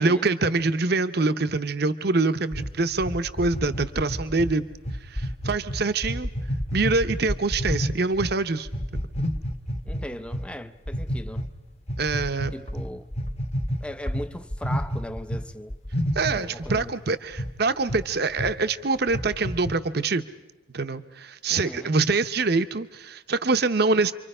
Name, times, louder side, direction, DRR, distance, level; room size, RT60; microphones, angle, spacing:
voice 1, 0.0-4.7 5.0-6.3 6.7-8.7 12.0-12.5 16.1-20.2 20.7-24.1, right 3 dB, 50° right, 0.8 m, -25 dB
sound 1, 2.5-8.3 8.7-10.5 10.9-11.5 11.9-15.4 15.7-16.9 17.4-17.5 17.9-18.1 18.4-18.5 18.9-19.7, equal, 30° left, 1.2 m, -29 dB
voice 2, 9.9-11.5 12.5-13.1 13.8-15.8 16.3-17.0 21.5-21.9, left 1 dB, 5° left, 0.7 m, -38 dB
29.5 x 24.5 x 5.5 m
head